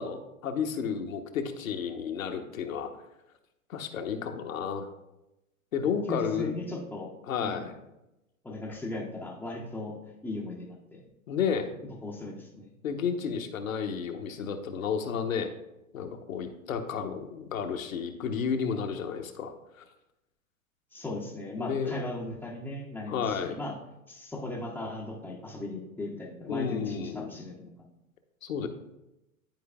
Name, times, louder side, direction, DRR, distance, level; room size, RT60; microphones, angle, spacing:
voice 1, 0.0-2.9 3.7-4.9 5.7-6.5 7.2-7.7 11.3-11.8 12.8-15.5 15.9-19.8 21.6-21.9 23.1-23.6 26.5-27.3 28.4-28.7, left 6 dB, 70° left, 5 dB, 1.0 m, -32 dB
voice 2, 6.1-7.1 7.4-7.7 8.4-9.9 10.2-11.0 12.0-12.7 20.9-23.7 24.1-27.7, left 2 dB, 5° left, -7 dB, 0.5 m, -37 dB
11.0 x 4.6 x 2.3 m, 0.92 s
figure-of-eight pair, 105°, 43 cm